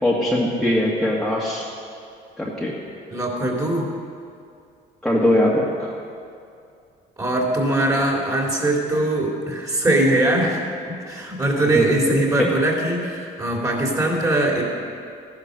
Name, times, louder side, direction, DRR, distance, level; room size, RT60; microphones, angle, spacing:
voice 1, 0.0-1.6 2.4-2.7 5.0-5.9 11.7-12.5, left 1 dB, 5° left, -5 dB, 1.7 m, -21 dB
voice 2, 3.1-3.9 7.2-10.6 11.1-14.6, right 1 dB, 20° right, -1 dB, 3.1 m, -21 dB
15.0 x 10.5 x 6.5 m, 2.4 s
cardioid pair, 110°, 17 cm